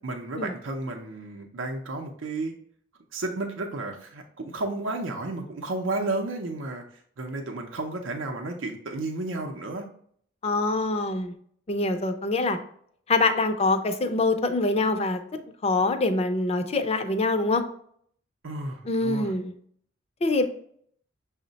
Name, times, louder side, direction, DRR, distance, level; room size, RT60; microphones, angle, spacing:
voice 1, 0.0-2.5 3.1-6.8 7.2-9.9 18.4-19.3, right 2 dB, 80° right, 2 dB, 0.6 m, -32 dB
voice 2, 10.4-11.3 11.7-12.6 13.1-15.2 15.6-17.6 18.9-19.5 20.2-20.5, left 2 dB, 30° left, 8 dB, 0.4 m, -24 dB
6.2 x 2.1 x 3.9 m, 0.62 s
head